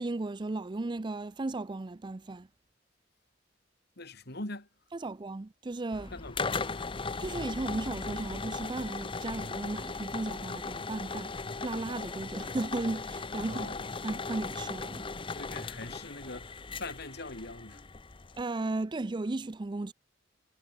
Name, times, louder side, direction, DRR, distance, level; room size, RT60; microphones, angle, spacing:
voice 1, 0.0-2.5 4.9-6.2 7.2-15.1 18.4-19.9, right 2 dB, 25° right, 0.5 m, -35 dB
voice 2, 4.0-4.7 6.1-6.9 13.4-13.9 15.3-17.8, left 2 dB, 60° left, 5.6 m, -43 dB
sound 1, 5.9-18.4, left 4 dB, 30° left, 0.8 m, -38 dB
head